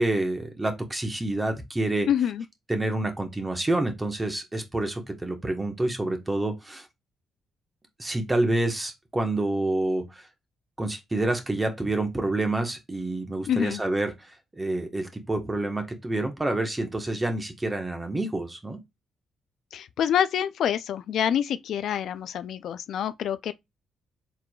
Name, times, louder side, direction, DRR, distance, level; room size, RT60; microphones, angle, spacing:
voice 1, 0.0-2.1 2.7-6.8 8.0-10.2 10.8-14.3 14.6-18.8, right 2 dB, 15° right, 1.2 m, -28 dB
voice 2, 2.1-2.5 13.5-13.8 19.7-23.5, left 9 dB, 70° left, 0.3 m, -26 dB
4.7 x 3.7 x 2.3 m
cardioid pair, 90°, 0 cm